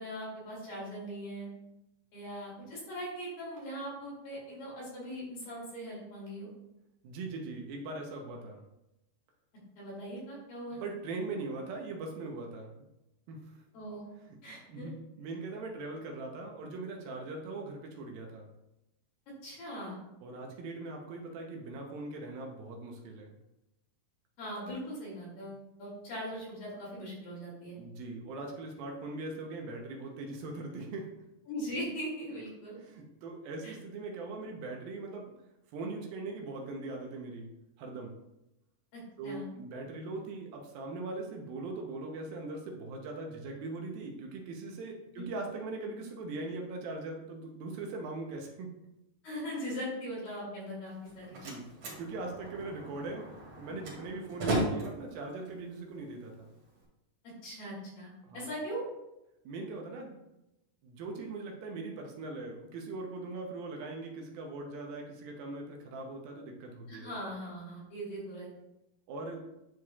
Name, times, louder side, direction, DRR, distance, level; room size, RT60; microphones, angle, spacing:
voice 1, 0.0-1.5 2.1-6.5 9.8-10.8 13.7-14.0 14.4-14.9 19.4-20.0 24.4-27.8 31.5-32.8 33.6-33.7 38.9-39.4 45.2-45.3 49.2-51.4 57.4-58.8 66.9-68.5, equal, 65° left, -5 dB, 4.0 m, -40 dB
voice 2, 7.0-8.6 10.7-12.9 13.3-13.6 14.3-18.5 20.2-23.4 27.8-31.1 32.8-35.3 35.7-37.5 37.8-38.2 39.2-48.7 51.3-51.7 52.0-53.3 53.6-56.5 58.2-58.5 59.5-60.2 60.8-67.1 69.1-69.4, right 3 dB, 75° right, 1 dB, 2.6 m, -40 dB
Slam, 50.9-56.8, right 1 dB, 45° right, 3.1 m, -37 dB
11.0 x 4.7 x 2.4 m, 0.90 s
omnidirectional pair, 4.4 m